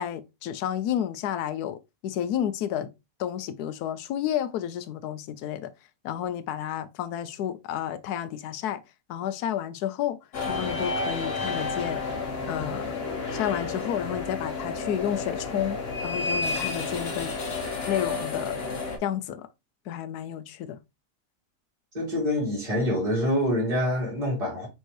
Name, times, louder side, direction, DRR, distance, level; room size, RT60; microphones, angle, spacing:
voice 1, 0.0-2.9 3.2-5.7 6.0-8.8 9.1-10.2 10.5-12.0 12.5-12.9 13.3-17.3 17.9-18.6 19.0-19.5 19.9-20.8, left 10 dB, 75° left, 1.1 m, -31 dB
sound 1, 10.3-19.0, left 3 dB, 45° left, 1.1 m, -31 dB
voice 2, 21.9-24.7, left 1 dB, 25° right, 2.0 m, -26 dB
4.5 x 3.6 x 3.1 m
omnidirectional pair, 1.7 m